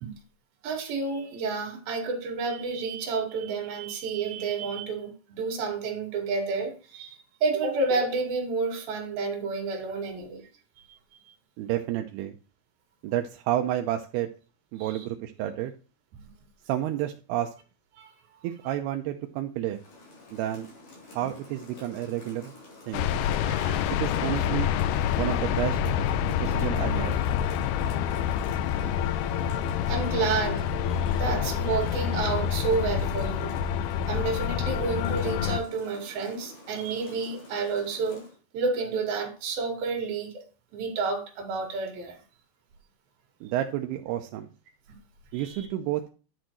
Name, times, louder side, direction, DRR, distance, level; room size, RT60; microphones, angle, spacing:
voice 1, 0.6-10.5 14.8-15.1 18.0-18.1 23.4-23.9 28.2-29.2 29.9-33.5 34.1-38.2 38.5-40.4 40.7-42.2 45.3-45.7, right 4 dB, 65° right, 3.7 m, -30 dB
voice 2, 11.6-12.4 13.0-14.3 14.7-15.7 16.7-17.5 18.4-19.8 20.3-20.7 21.1-22.5 22.9-23.1 23.9-24.7 25.2-25.8 26.3-27.2 43.4-44.5 45.3-46.1, right 12 dB, 80° right, 2.6 m, -30 dB
Rain, 19.7-38.4, left 2 dB, 50° left, 5.0 m, -49 dB
sound 1, 22.9-35.6, left 9 dB, 80° left, 2.5 m, -27 dB
10.5 x 6.6 x 3.0 m
omnidirectional pair, 4.8 m